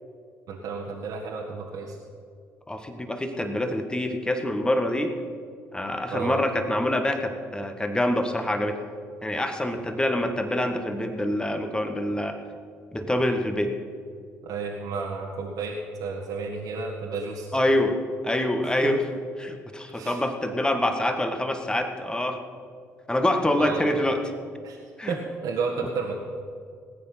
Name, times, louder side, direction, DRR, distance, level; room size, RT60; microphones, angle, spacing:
voice 1, 0.5-2.0 6.1-6.4 14.4-17.5 18.6-19.0 19.9-20.2 23.6-23.8 24.6-24.8 25.1-26.2, right 4 dB, 60° right, -2 dB, 1.7 m, -32 dB
voice 2, 2.7-5.1 5.7-8.8 9.2-12.4 12.9-13.7 17.5-18.0 18.2-19.0 19.4-22.4 23.1-24.2 25.0-25.2, left 1 dB, 10° left, 6 dB, 1.8 m, -25 dB
19.0 x 9.0 x 5.9 m, 2.2 s
hypercardioid pair, 50°, 7 cm